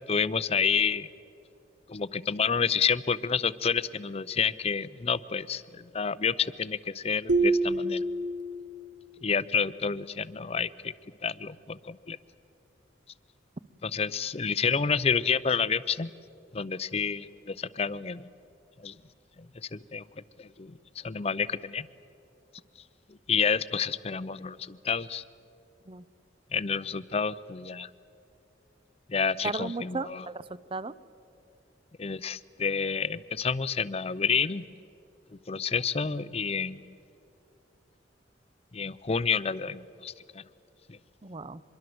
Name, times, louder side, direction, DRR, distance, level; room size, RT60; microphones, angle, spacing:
voice 1, 0.1-1.1 1.9-8.0 9.2-10.9 11.2-12.2 13.8-16.1 16.5-18.2 18.8-19.0 19.4-20.0 20.4-21.9 23.1-25.2 26.5-27.9 29.1-30.3 32.0-34.6 35.5-36.8 38.7-40.4 40.9-41.0, left 6 dB, 35° left, 16 dB, 0.5 m, -29 dB
sound 1, 7.3-9.0, right 2 dB, 85° right, 1.3 m, -27 dB
voice 2, 29.4-30.9 41.2-41.6, right 3 dB, 30° right, 18 dB, 0.6 m, -35 dB
25.5 x 22.5 x 7.8 m, 2.7 s
head